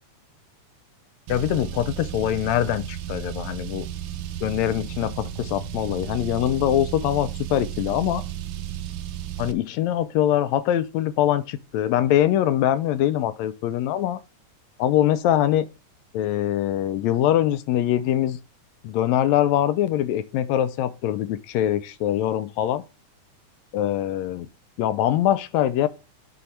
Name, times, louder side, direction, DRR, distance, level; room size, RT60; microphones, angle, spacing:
voice 1, 1.3-3.9 4.4-8.2 9.4-14.2 14.8-15.7 16.1-18.4 18.8-22.8 23.7-24.5 24.8-25.9, left 12 dB, 80° left, 1.6 m, -23 dB
Car, 1.3-9.5, right 11 dB, 85° right, 1.2 m, -33 dB
8.2 x 4.3 x 4.3 m
omnidirectional pair, 3.5 m